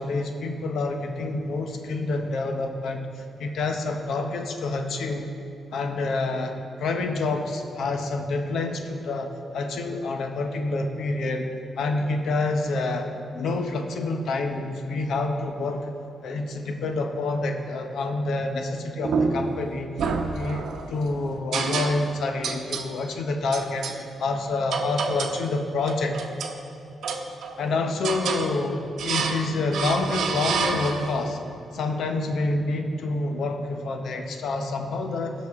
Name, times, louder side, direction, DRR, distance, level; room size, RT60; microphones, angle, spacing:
voice 1, 0.0-5.3 5.7-13.1 13.3-15.9 16.2-19.9 20.3-26.2 27.6-31.4 31.7-35.3, left 3 dB, 75° left, 5 dB, 0.9 m, -28 dB
sound 1, 19.0-19.6 20.0-20.9 21.5-22.2 22.4-22.9 23.5-24.0 24.7-25.4 25.8-26.6 27.0-27.6 28.0-28.5 29.0-29.5 29.7-31.2, right 5 dB, 75° right, 0.8 m, -28 dB
16.5 x 6.3 x 3.6 m, 2.7 s
cardioid pair, 110°, 0 cm